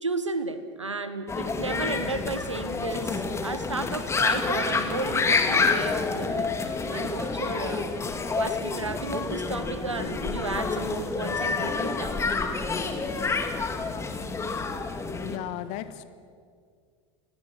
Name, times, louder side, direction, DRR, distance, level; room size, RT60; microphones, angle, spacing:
voice 1, 0.0-6.5 6.9-7.9 8.3-12.1, right 3 dB, 85° right, 11 dB, 1.5 m, -33 dB
sound 1, 1.3-15.4, left 4 dB, 20° left, 2.2 m, -28 dB
voice 2, 15.1-16.0, left 13 dB, 45° left, 13 dB, 1.4 m, -36 dB
29.5 x 19.0 x 6.2 m, 2.1 s
figure-of-eight pair, 80°, 15 cm